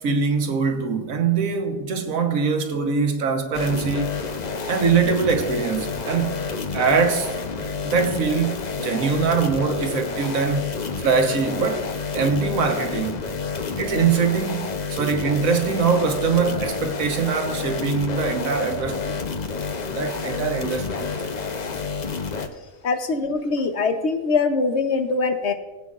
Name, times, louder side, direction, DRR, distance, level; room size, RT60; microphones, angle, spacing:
voice 1, 0.0-4.2 4.7-6.4 6.7-7.3 7.8-10.7 11.0-13.3 13.8-19.2 19.9-21.2, right 5 dB, 85° right, 1.5 m, -23 dB
sound 1, 3.5-22.5, left 4 dB, 40° left, 0.7 m, -29 dB
voice 2, 22.8-25.5, left 4 dB, 60° left, 1.1 m, -22 dB
19.5 x 8.3 x 2.5 m
omnidirectional pair, 1.4 m